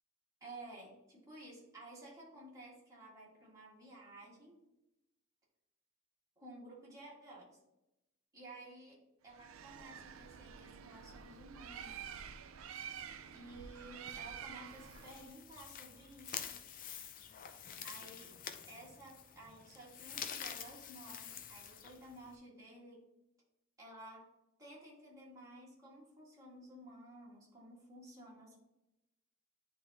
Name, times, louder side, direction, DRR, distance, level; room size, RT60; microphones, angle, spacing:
voice 1, 0.4-4.6 6.4-7.6 8.3-12.1 13.3-16.5 17.8-18.3 18.7-23.0 23.8-24.3 24.6-28.6, right 1 dB, 15° right, -6 dB, 1.8 m, -54 dB
Bird, 9.3-15.3, right 7 dB, 70° right, 0.4 m, -49 dB
sound 1, 14.6-22.4, left 8 dB, 40° left, 0.5 m, -48 dB
9.9 x 3.5 x 2.8 m, 0.93 s
head